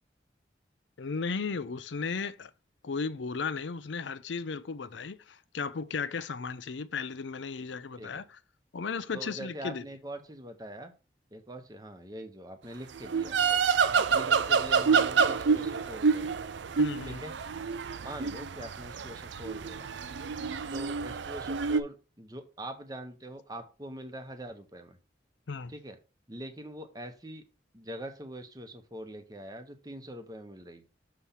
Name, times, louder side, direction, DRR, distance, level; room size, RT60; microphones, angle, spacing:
voice 1, 1.0-2.5 2.8-8.4 8.7-9.8 13.8-14.0 16.8-17.2 25.5-25.7, left 5 dB, 90° left, 0.5 m, -35 dB
voice 2, 9.1-10.9 11.3-13.4 13.9-16.4 17.0-17.3 18.0-19.9 20.7-25.0 25.7-26.0 26.3-27.4 27.7-30.9, right 1 dB, 20° right, 0.9 m, -43 dB
sound 1, 13.0-21.8, right 5 dB, 85° right, 0.5 m, -28 dB
6.8 x 3.2 x 5.7 m
head